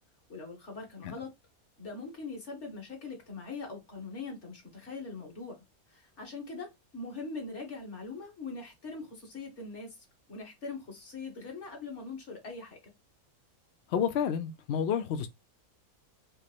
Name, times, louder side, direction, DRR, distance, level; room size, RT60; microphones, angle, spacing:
voice 1, 0.3-1.3 1.8-5.6 5.9-6.7 6.9-10.0 10.3-12.8, left 3 dB, 50° left, 2.0 m, -42 dB
voice 2, 13.9-15.3, left 8 dB, 70° left, 0.6 m, -30 dB
5.2 x 2.0 x 4.2 m
omnidirectional pair, 1.6 m